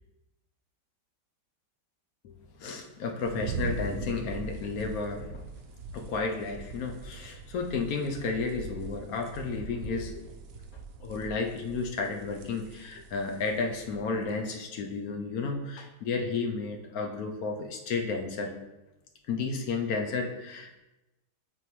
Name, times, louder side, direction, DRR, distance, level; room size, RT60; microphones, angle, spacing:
voice 1, 2.6-5.5 5.9-10.2 11.0-18.5 19.3-20.8, left 4 dB, 65° left, 3 dB, 1.0 m, -32 dB
sound 1, 3.2-14.4, right 4 dB, 70° right, 0.9 m, -41 dB
8.5 x 3.5 x 3.1 m, 1.0 s
omnidirectional pair, 1.9 m